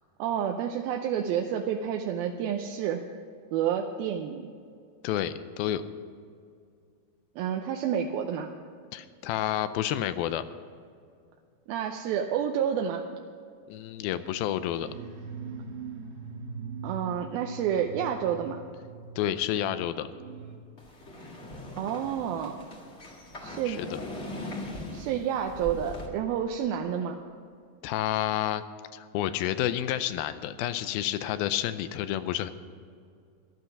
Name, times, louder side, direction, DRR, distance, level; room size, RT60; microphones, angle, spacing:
voice 1, 0.2-3.0 3.5-4.5 7.4-8.5 11.7-13.0 16.8-18.6 21.8-22.6 23.4-23.8 24.9-27.2, right 9 dB, 80° right, 3 dB, 2.5 m, -29 dB
voice 2, 5.0-5.8 8.9-10.4 13.7-14.9 19.2-20.1 23.7-24.0 27.8-28.6 28.9-32.5, left 12 dB, 85° left, 12 dB, 2.4 m, -30 dB
sound 1, 14.7-20.6, right 5 dB, 40° right, 2.3 m, -41 dB
sound 2, 20.8-26.1, left 1 dB, 30° left, 1.2 m, -40 dB
14.5 x 12.0 x 5.9 m, 2.3 s
omnidirectional pair, 4.3 m